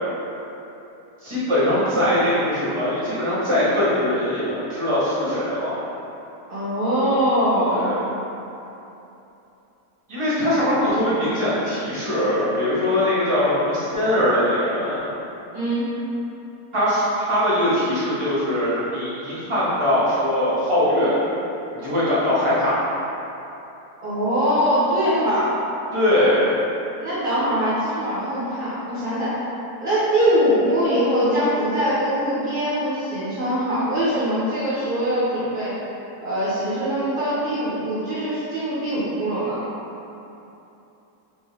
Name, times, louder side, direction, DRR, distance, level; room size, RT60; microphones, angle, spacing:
voice 1, 1.2-5.8 7.7-8.0 10.1-15.0 16.7-21.2 21.7-22.8 25.9-26.6, left 1 dB, 20° right, -11 dB, 0.9 m, -21 dB
voice 2, 6.5-7.9 15.5-15.8 24.0-25.5 27.0-29.4 29.8-35.7 36.2-39.6, equal, 45° right, -12 dB, 0.7 m, -22 dB
3.7 x 2.6 x 3.2 m, 2.9 s
omnidirectional pair, 1.8 m